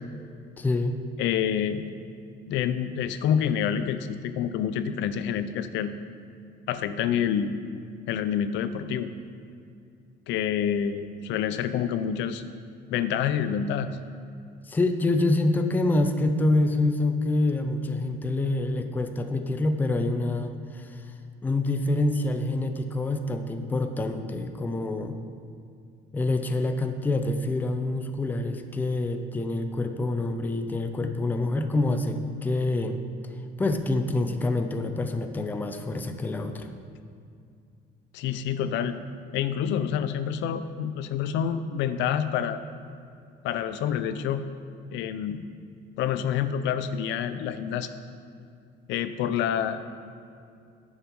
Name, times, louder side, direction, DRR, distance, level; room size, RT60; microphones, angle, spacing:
voice 1, 0.6-1.0 14.6-21.1 21.4-25.2 26.1-33.0 33.6-36.7, left 2 dB, 10° left, 7 dB, 0.4 m, -26 dB
voice 2, 1.2-1.9 2.5-5.9 6.7-7.5 8.1-9.1 10.3-12.4 12.9-13.9 38.1-39.0 39.3-42.6 43.4-44.5 44.9-45.5 46.0-47.9 48.9-49.8, left 8 dB, 75° left, 11 dB, 0.6 m, -27 dB
10.0 x 7.2 x 5.3 m, 2.4 s
cardioid pair, 170°, 19 cm